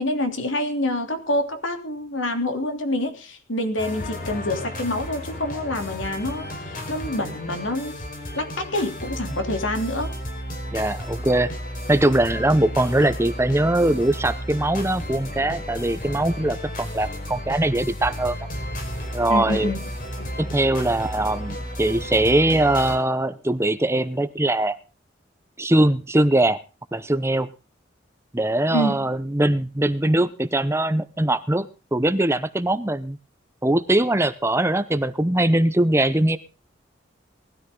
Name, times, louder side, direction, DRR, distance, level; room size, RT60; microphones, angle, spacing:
voice 1, 0.0-8.0 8.3-10.1 19.3-19.8 20.2-20.3 28.7-29.1, left 1 dB, 85° left, 7 dB, 3.1 m, -27 dB
sound 1, 3.8-23.0, equal, 45° left, 4.9 m, -33 dB
voice 2, 10.7-11.5 11.9-18.4 19.1-19.7 20.4-24.8 25.6-26.6 26.9-27.5 28.3-33.2 33.6-36.4, right 1 dB, 15° right, 12 dB, 0.8 m, -21 dB
19.0 x 13.0 x 3.8 m, 0.33 s
head